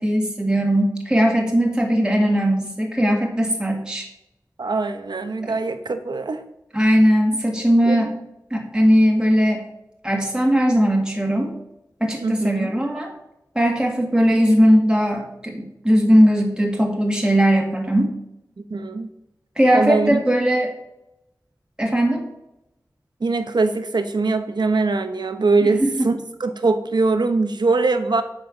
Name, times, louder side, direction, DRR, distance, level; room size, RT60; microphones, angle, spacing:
voice 1, 0.0-4.1 5.4-5.5 6.7-8.1 8.5-9.6 10.0-11.5 12.0-13.1 13.6-18.1 19.6-20.7 21.8-22.3 25.6-26.1, equal, 10° right, 0 dB, 1.9 m, -19 dB
voice 2, 4.6-6.4 7.9-8.1 12.2-12.7 18.7-19.1 19.7-20.2 23.2-28.2, right 3 dB, 85° right, 8 dB, 0.9 m, -22 dB
9.0 x 5.5 x 6.5 m, 0.85 s
wide cardioid pair, 60°, 7 cm